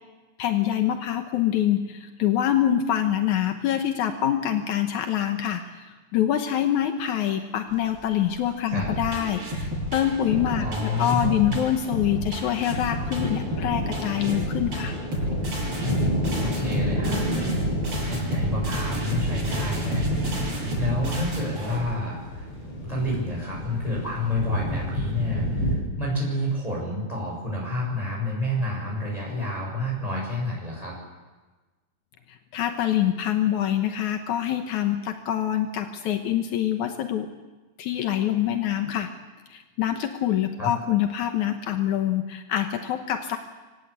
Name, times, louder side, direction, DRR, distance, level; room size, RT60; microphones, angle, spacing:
voice 1, 0.4-10.7 11.0-14.9 32.5-37.3 37.8-39.1 39.5-43.4, left 11 dB, 80° left, 6 dB, 2.5 m, -25 dB
sound 1, 7.7-25.8, equal, 45° left, 8.6 m, -31 dB
sound 2, 8.7-21.9, equal, 50° right, 8.8 m, -30 dB
voice 2, 10.6-11.6 16.4-17.3 18.0-22.5 22.9-30.9 40.6-40.7, left 1 dB, 10° left, -3 dB, 6.8 m, -29 dB
25.5 x 16.5 x 8.5 m, 1.2 s
omnidirectional pair, 3.4 m